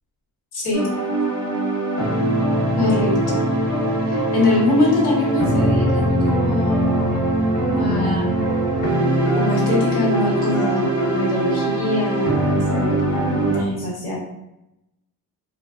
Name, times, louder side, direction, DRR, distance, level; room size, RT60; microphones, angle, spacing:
voice 1, 0.5-0.9 2.8-3.4 4.1-7.1 7.8-8.4 9.3-14.2, left 2 dB, 75° left, -4 dB, 1.2 m, -23 dB
sound 1, 0.7-13.6, right 1 dB, 55° left, 1.3 m, -21 dB
3.1 x 2.3 x 2.4 m, 0.86 s
cardioid pair, 135°, 37 cm